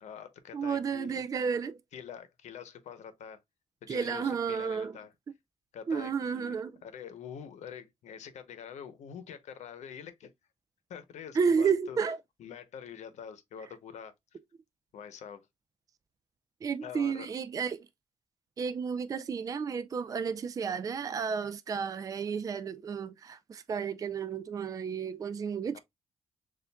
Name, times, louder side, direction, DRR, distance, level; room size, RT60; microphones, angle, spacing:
voice 1, 0.0-1.2 1.9-3.4 3.8-5.1 5.7-10.3 10.9-12.0 12.4-14.1 14.9-15.5 16.8-17.3 25.7-25.8, left 8 dB, 90° left, 0.8 m, -45 dB
voice 2, 0.5-1.8 3.9-5.0 5.9-6.8 11.3-12.2 16.6-17.9 18.6-25.8, right 6 dB, 30° right, 0.4 m, -32 dB
6.8 x 2.5 x 2.2 m
wide cardioid pair, 155°, 12 cm